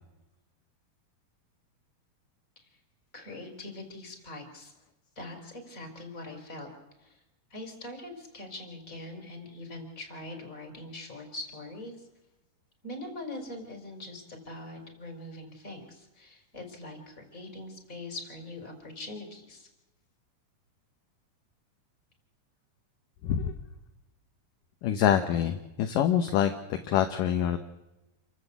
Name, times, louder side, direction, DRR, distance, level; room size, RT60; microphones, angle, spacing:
voice 1, 3.1-4.7 5.2-6.7 7.0-7.2 7.5-12.1 12.8-19.7, left 2 dB, 20° left, 4 dB, 5.0 m, -42 dB
voice 2, 23.2-23.6 24.8-27.6, left 9 dB, 70° left, 7 dB, 2.4 m, -26 dB
28.5 x 14.0 x 8.3 m, 1.0 s
omnidirectional pair, 4.4 m